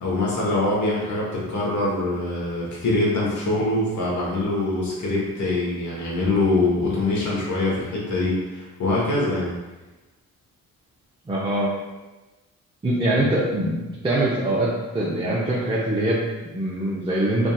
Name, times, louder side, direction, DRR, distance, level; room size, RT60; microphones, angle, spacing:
voice 1, 0.0-9.5, left 2 dB, 60° left, -4 dB, 1.2 m, -24 dB
voice 2, 11.3-11.7 12.8-17.5, right 1 dB, 15° right, -6 dB, 0.7 m, -23 dB
3.4 x 2.7 x 2.3 m, 1.1 s
supercardioid pair, 50°, 33 cm